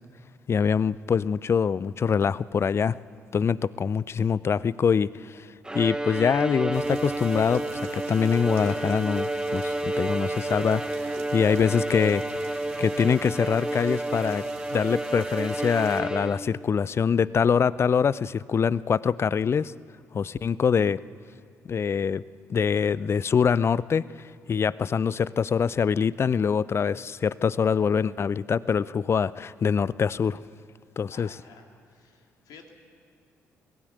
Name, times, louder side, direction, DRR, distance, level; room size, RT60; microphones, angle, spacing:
voice 1, 0.5-3.0 3.3-5.1 5.7-7.6 7.9-10.8 11.3-12.2 12.8-14.4 14.7-19.7 20.1-21.0 21.7-22.2 22.5-24.0 24.5-30.4 31.0-31.3, left 6 dB, 35° left, 21 dB, 0.5 m, -24 dB
Bowed string instrument, 5.6-16.7, right 1 dB, 10° right, 0.9 m, -30 dB
sound 1, 6.7-16.0, right 8 dB, 75° right, 1.5 m, -47 dB
voice 2, 31.1-32.7, left 5 dB, 60° left, 3 dB, 2.4 m, -51 dB
23.0 x 16.5 x 8.2 m, 2.2 s
figure-of-eight pair, 45°, 7 cm